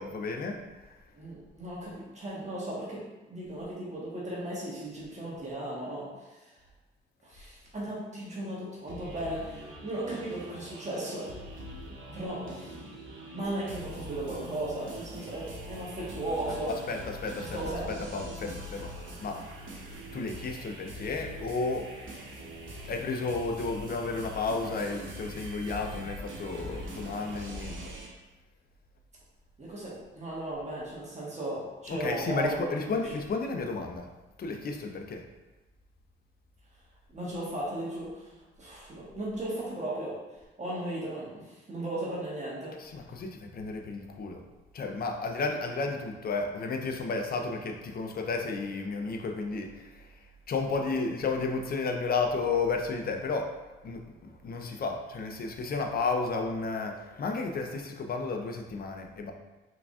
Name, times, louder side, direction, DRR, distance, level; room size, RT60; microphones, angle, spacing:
voice 1, 0.0-1.0 16.7-18.9 19.2-19.4 20.1-21.9 22.8-27.9 31.9-34.1 34.4-35.3 42.8-44.4 44.7-59.3, left 4 dB, 45° left, 4 dB, 0.5 m, -33 dB
voice 2, 1.1-6.5 7.2-11.3 12.1-12.8 13.3-16.7 17.4-17.9 29.6-33.0 37.1-38.3 38.6-40.2 40.6-42.8, right 1 dB, 35° right, -6 dB, 1.2 m, -36 dB
sound 1, 8.9-28.1, right 1 dB, 65° right, 0.9 m, -43 dB
3.8 x 3.5 x 2.4 m, 1.1 s
cardioid pair, 80°, 21 cm